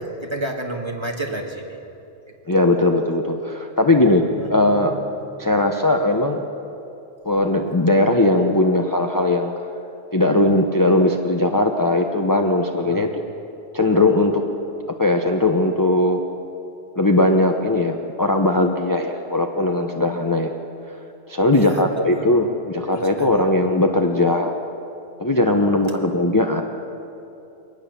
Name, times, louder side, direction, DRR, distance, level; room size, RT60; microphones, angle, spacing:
voice 1, 0.2-1.8 4.4-5.0 12.9-13.1 21.5-22.3 22.9-23.3 25.9-26.1, right 2 dB, 25° right, 1 dB, 2.0 m, -31 dB
voice 2, 2.5-4.2 4.5-4.9 5.4-6.4 7.2-9.5 10.1-13.2 13.7-14.4 15.0-16.2 17.0-20.5 20.9-21.0 21.3-24.5 25.2-26.6, left 2 dB, 20° left, 3 dB, 0.9 m, -19 dB
23.0 x 19.0 x 7.0 m, 2.8 s
omnidirectional pair, 1.2 m